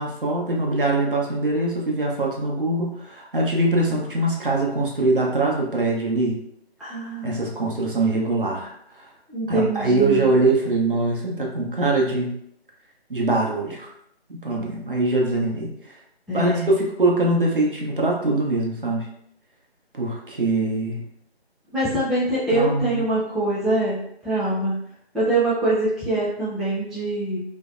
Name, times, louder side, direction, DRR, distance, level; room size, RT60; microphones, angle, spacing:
voice 1, 0.0-6.4 7.2-9.1 9.5-12.3 13.1-13.9 14.3-15.9 16.3-19.1 19.9-21.0 22.5-23.0, right 2 dB, 55° right, -2 dB, 0.6 m, -23 dB
voice 2, 6.8-7.4 9.3-10.3 16.3-16.7 21.7-24.9 25.1-27.4, right 2 dB, ahead, -10 dB, 0.4 m, -24 dB
2.6 x 2.0 x 2.4 m, 0.71 s
figure-of-eight pair, 165°, 33 cm